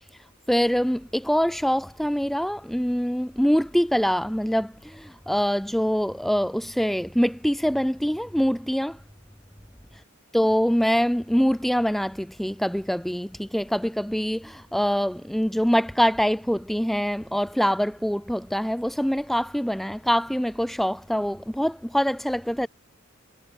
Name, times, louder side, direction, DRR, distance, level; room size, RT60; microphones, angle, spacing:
voice 1, 0.5-9.0 10.3-22.7, equal, ahead, 0.3 m, -24 dB
head